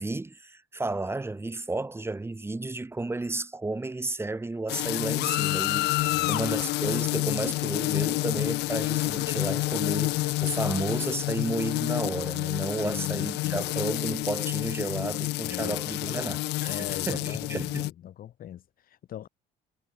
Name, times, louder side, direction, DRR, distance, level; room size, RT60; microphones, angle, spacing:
voice 1, 0.0-17.9, right 2 dB, 15° right, 6.7 m, -32 dB
sound 1, 4.7-17.9, left 20 dB, 85° left, 0.8 m, -29 dB
voice 2, 12.8-13.7 14.8-15.8 16.6-19.3, left 11 dB, 60° left, 3.8 m, -40 dB
cardioid pair, 110°, 17 cm